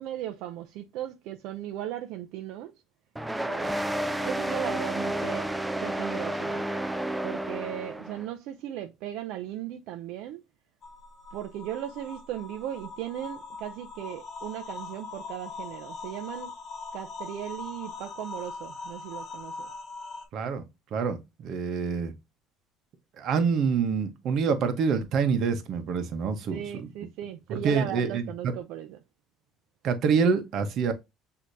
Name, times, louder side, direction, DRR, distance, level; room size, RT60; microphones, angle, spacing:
voice 1, 0.0-2.7 3.4-3.8 4.2-5.5 5.8-6.6 7.2-10.4 11.3-16.5 16.9-19.7 26.5-29.0, right 11 dB, 70° right, 0.5 m, -37 dB
sound 1, 3.2-8.3, right 1 dB, 5° right, 0.3 m, -31 dB
sound 2, 10.8-20.2, left 4 dB, 30° left, 1.6 m, -41 dB
voice 2, 20.3-20.7 20.9-22.1 23.2-26.9 27.5-28.2 29.8-30.9, right 5 dB, 50° right, 0.9 m, -26 dB
6.3 x 2.8 x 2.6 m
cardioid pair, 140°, 0 cm